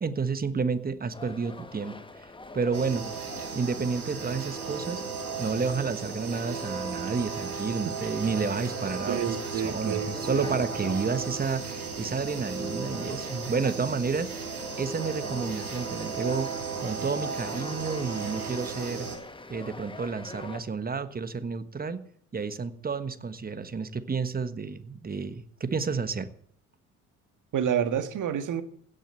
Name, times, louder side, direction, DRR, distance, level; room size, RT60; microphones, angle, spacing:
voice 1, 0.0-2.3 2.5-3.1 3.5-5.0 5.4-14.3 14.8-19.1 19.5-22.0 22.3-26.3, right 5 dB, 20° right, 1.4 m, -30 dB
sound 1, 1.1-20.6, left 2 dB, 10° left, 1.3 m, -44 dB
sound 2, 2.7-19.2, right 5 dB, 90° right, 2.0 m, -35 dB
voice 2, 9.1-10.6 27.5-28.6, right 8 dB, 45° right, 1.8 m, -29 dB
16.5 x 6.7 x 7.6 m
figure-of-eight pair, 55°, 43 cm